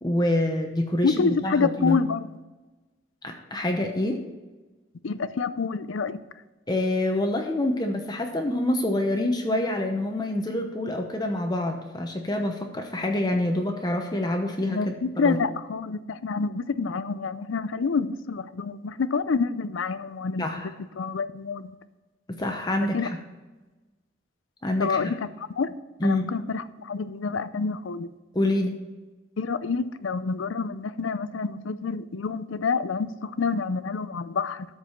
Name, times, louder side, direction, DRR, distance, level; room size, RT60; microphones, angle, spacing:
voice 1, 0.0-2.0 3.2-4.2 6.7-15.4 20.4-20.7 22.3-23.1 24.6-25.1 26.0-26.3 28.3-28.8, left 1 dB, 20° left, 3 dB, 0.8 m, -26 dB
voice 2, 1.0-2.2 5.0-6.2 14.7-21.8 22.9-23.1 24.8-25.2 25.6-25.7 26.0-28.1 29.4-34.7, left 4 dB, 85° left, 14 dB, 0.5 m, -27 dB
13.0 x 4.8 x 5.7 m, 1.2 s
head